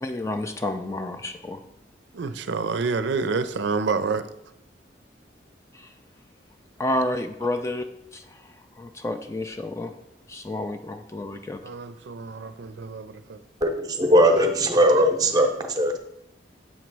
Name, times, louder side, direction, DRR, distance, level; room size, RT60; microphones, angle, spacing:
voice 1, 0.0-1.6 5.7-5.9 6.8-7.9 8.1-9.9 10.3-11.6, left 1 dB, 15° left, 7 dB, 0.3 m, -30 dB
voice 2, 2.1-4.2 11.6-13.4, right 4 dB, 80° right, 11 dB, 0.4 m, -28 dB
voice 3, 13.6-15.5 15.8-15.9, equal, 20° right, 5 dB, 0.7 m, -19 dB
7.3 x 3.1 x 6.0 m, 0.81 s
head